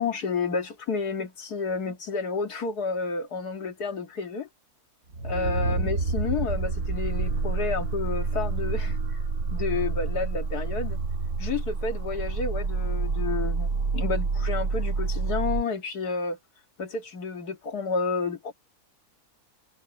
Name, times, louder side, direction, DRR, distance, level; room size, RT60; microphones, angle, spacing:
voice 1, 0.0-4.5 5.2-9.2 9.5-11.0 11.4-16.4 16.8-18.5, left 4 dB, 85° left, 2.5 m, -30 dB
sound 1, 5.1-15.6, right 4 dB, 70° right, 2.7 m, -28 dB
omnidirectional pair, 1.6 m